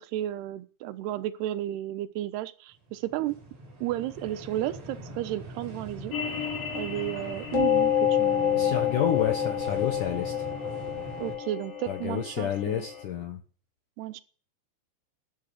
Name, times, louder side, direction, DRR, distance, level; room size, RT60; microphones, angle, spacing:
voice 1, 0.0-3.4 3.8-6.1 6.7-8.7 11.2-12.8 14.0-14.2, right 13 dB, 70° right, 10 dB, 2.8 m, -33 dB
sound 1, 2.7-11.4, right 1 dB, 40° right, 5.3 m, -42 dB
sound 2, 6.1-13.0, left 9 dB, 50° left, 6.9 m, -28 dB
voice 2, 8.5-10.5 11.9-13.4, left 10 dB, 70° left, 6 dB, 2.0 m, -30 dB
13.0 x 10.5 x 9.9 m, 0.41 s
omnidirectional pair, 5.4 m